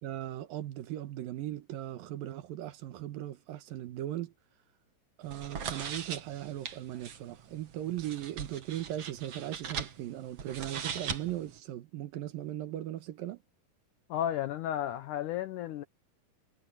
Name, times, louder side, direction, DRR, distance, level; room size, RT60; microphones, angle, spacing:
voice 1, 0.0-4.3 5.2-13.4, right 13 dB, 70° right, 2.8 m, -38 dB
sound 1, 5.2-11.6, right 7 dB, 50° right, 2.2 m, -40 dB
voice 2, 14.1-15.8, left 11 dB, 85° left, 1.8 m, -33 dB
omnidirectional pair, 4.6 m